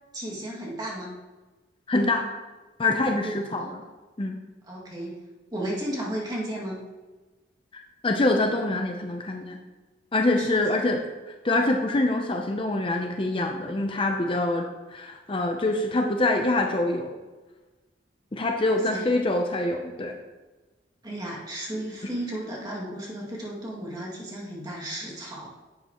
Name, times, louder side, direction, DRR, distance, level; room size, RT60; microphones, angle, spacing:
voice 1, 0.1-1.2 3.2-3.4 4.7-5.2 5.5-6.8 10.4-10.8 18.7-19.1 21.0-25.5, right 1 dB, 20° right, -4 dB, 2.2 m, -34 dB
voice 2, 1.9-2.2 2.8-3.8 4.2-4.4 7.7-9.6 10.1-11.0 11.4-17.1 18.3-20.1, left 2 dB, 30° left, 3 dB, 0.6 m, -25 dB
10.5 x 8.0 x 3.0 m, 1.2 s
head